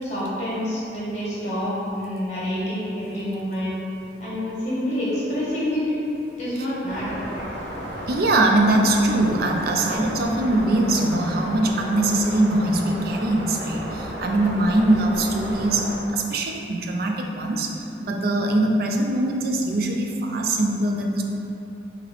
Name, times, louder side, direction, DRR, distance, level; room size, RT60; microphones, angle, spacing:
voice 1, 0.0-3.7 4.2-5.8 6.4-7.4, equal, 40° left, -8 dB, 1.3 m, -27 dB
sound 1, 6.9-16.0, equal, 70° right, 0.8 m, -33 dB
voice 2, 8.1-15.9 16.1-21.2, right 1 dB, 55° right, 2 dB, 0.4 m, -22 dB
4.8 x 2.9 x 3.4 m, 2.9 s
head